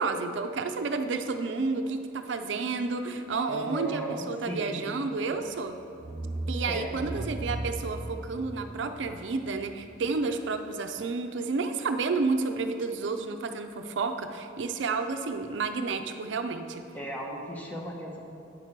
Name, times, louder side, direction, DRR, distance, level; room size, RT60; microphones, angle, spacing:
voice 1, 0.0-5.8 6.5-16.8, right 4 dB, 90° right, 7 dB, 0.5 m, -31 dB
voice 2, 3.5-5.0 6.6-6.9 16.9-18.2, right 1 dB, 10° left, -2 dB, 0.9 m, -36 dB
sound 1, 5.4-5.6 6.0-10.6, right 2 dB, 30° right, 0.4 m, -37 dB
8.9 x 5.8 x 4.5 m, 2.6 s
head